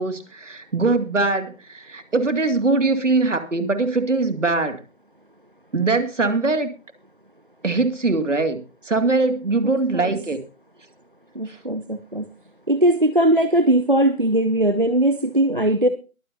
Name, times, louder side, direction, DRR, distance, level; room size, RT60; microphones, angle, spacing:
voice 1, 0.0-4.8 5.7-6.7 7.6-10.4 11.5-11.6, right 3 dB, 60° right, 8 dB, 2.4 m, -22 dB
voice 2, 9.6-10.2 11.3-12.3 12.7-15.9, right 1 dB, 40° right, 11 dB, 0.6 m, -20 dB
22.5 x 8.7 x 2.7 m, 0.33 s
figure-of-eight pair, 165°, 42 cm